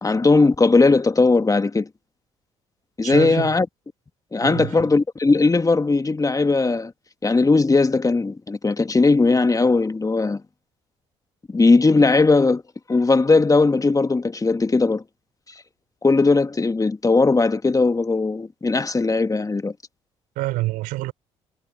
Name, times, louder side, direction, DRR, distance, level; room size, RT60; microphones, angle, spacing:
voice 1, 0.0-1.9 3.0-3.7 4.3-6.9 7.2-10.4 11.5-12.6 12.9-15.0 16.0-19.7, left 3 dB, 25° left, 1.8 m, -18 dB
voice 2, 3.0-3.6 4.4-4.9 20.4-21.1, right 19 dB, 75° right, 3.7 m, -27 dB
hypercardioid pair, 50°, 14 cm